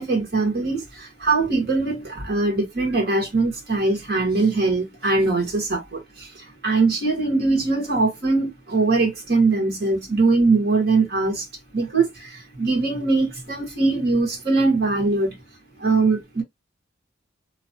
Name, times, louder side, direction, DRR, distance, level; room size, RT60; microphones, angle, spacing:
voice 1, 0.0-11.4 11.7-15.3 15.8-16.4, right 3 dB, 55° right, 1.5 m, -22 dB
3.0 x 2.4 x 2.7 m
head